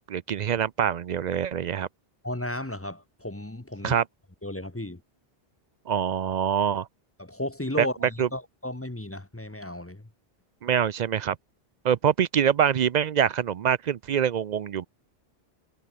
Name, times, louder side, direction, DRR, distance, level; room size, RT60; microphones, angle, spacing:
voice 1, 0.1-1.9 3.8-4.0 5.9-6.9 7.8-7.9 8.2-8.3 10.6-11.4 11.8-14.9, right 8 dB, 55° right, 0.5 m, -24 dB
voice 2, 2.2-4.0 4.4-5.0 7.2-10.0, left 1 dB, 15° left, 1.0 m, -34 dB
omnidirectional pair, 1.1 m